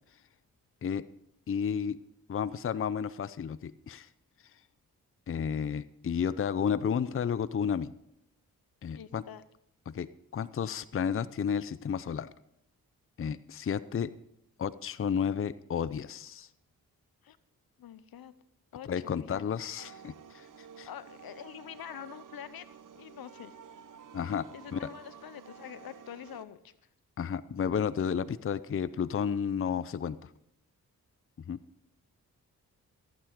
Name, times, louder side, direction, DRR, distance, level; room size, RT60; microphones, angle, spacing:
voice 1, 1.5-2.0 2.3-4.1 5.3-7.9 8.8-9.2 9.9-12.3 13.2-14.1 14.6-16.5 18.8-20.9 24.1-24.5 24.7-24.9 27.2-30.3 31.4-31.6, left 7 dB, 35° left, 16 dB, 0.6 m, -32 dB
voice 2, 8.9-9.4 17.2-17.4 17.8-18.3 18.7-19.5 20.9-22.7 22.9-23.6 24.5-26.7, left 10 dB, 70° left, 15 dB, 0.9 m, -46 dB
sound 1, 19.8-26.4, right 7 dB, 55° right, 0.9 m, -51 dB
14.0 x 9.1 x 5.1 m, 0.76 s
supercardioid pair, 45°, 37 cm